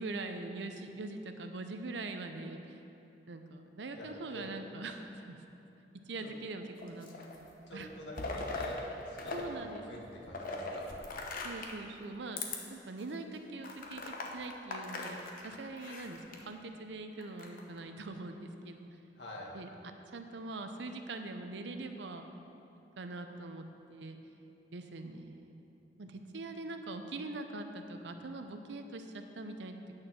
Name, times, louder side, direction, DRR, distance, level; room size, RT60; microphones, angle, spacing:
voice 1, 0.0-2.8 3.3-5.4 6.1-7.9 9.3-9.9 11.4-15.2 15.4-18.9 19.5-19.7 20.1-22.3 23.0-23.6 23.9-24.2 24.7-29.7, right 2 dB, 80° right, 7 dB, 0.7 m, -43 dB
voice 2, 3.9-4.5 6.2-6.3 7.7-10.9 19.1-19.5, equal, 80° left, -2 dB, 1.7 m, -47 dB
sound 1, 6.8-7.4 7.8-9.4 9.7-11.8 12.3-12.6 13.0-13.1 13.6-16.4 17.2-17.8, left 3 dB, 55° left, 1.0 m, -40 dB
9.1 x 6.5 x 6.0 m, 2.9 s
head